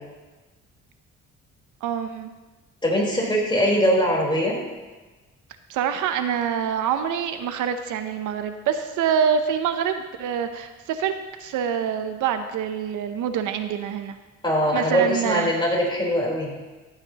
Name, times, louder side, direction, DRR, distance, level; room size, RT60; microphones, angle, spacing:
voice 1, 1.8-2.3 5.7-11.1 11.4-14.2 14.7-15.5, right 8 dB, 85° right, 8 dB, 0.8 m, -25 dB
voice 2, 2.8-4.5 14.4-16.5, equal, 15° left, -3 dB, 3.8 m, -22 dB
14.0 x 8.9 x 2.9 m, 1.2 s
cardioid pair, 90°, 30 cm